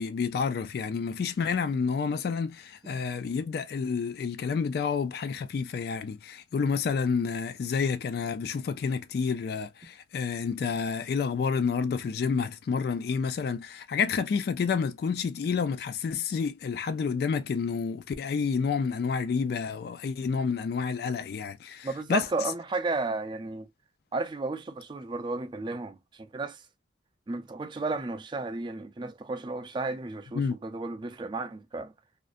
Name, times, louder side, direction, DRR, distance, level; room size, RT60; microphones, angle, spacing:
voice 1, 0.0-22.3 30.3-30.5, left 5 dB, 60° left, 0.3 m, -29 dB
voice 2, 21.8-23.7 24.1-26.6 27.3-31.9, right 3 dB, 25° right, 0.4 m, -33 dB
2.5 x 2.1 x 2.4 m
head